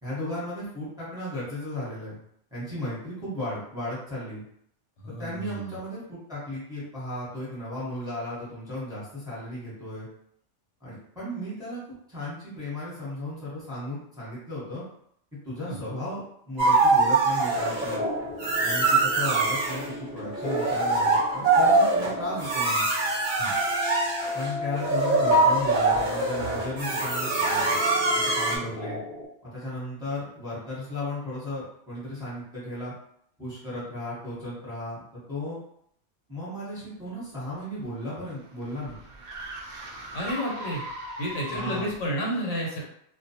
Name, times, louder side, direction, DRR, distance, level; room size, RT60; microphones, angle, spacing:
voice 1, 0.0-2.2 2.5-4.4 5.1-10.1 10.8-11.8 12.1-14.8 15.4-18.0 18.6-22.9 24.3-27.8 28.2-29.0 29.4-32.9 33.4-35.6 36.3-39.0 41.5-41.9, left 1 dB, 5° right, -9 dB, 0.9 m, -35 dB
voice 2, 5.0-5.8 15.6-15.8 23.4-23.6 40.1-40.8 41.2-42.8, equal, 75° left, -2 dB, 1.0 m, -31 dB
sound 1, 16.6-18.0 18.4-19.8 20.3-28.6, right 3 dB, 50° right, 0.7 m, -23 dB
sound 2, 17.5-29.3, left 2 dB, 50° left, 0.8 m, -36 dB
sound 3, 37.5-42.0, right 1 dB, 80° right, 0.4 m, -39 dB
2.3 x 2.0 x 2.7 m, 0.70 s
omnidirectional pair, 1.3 m